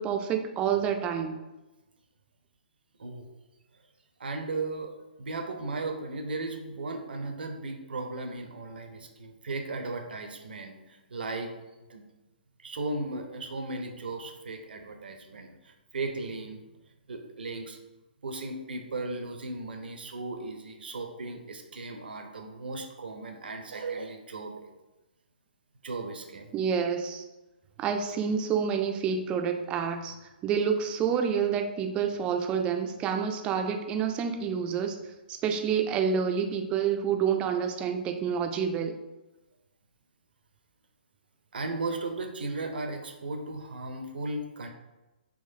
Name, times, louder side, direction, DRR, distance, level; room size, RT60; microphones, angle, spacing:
voice 1, 0.0-1.4 26.5-27.2 27.8-35.0 35.3-38.9, right 7 dB, 20° right, 5 dB, 0.3 m, -28 dB
voice 2, 4.2-4.9 5.2-11.5 11.9-12.0 12.6-16.6 17.1-17.8 18.2-24.7 25.8-26.5 41.5-44.7, right 3 dB, 70° right, 4 dB, 0.5 m, -36 dB
3.7 x 3.0 x 2.6 m, 1.1 s
figure-of-eight pair, 130°, 6 cm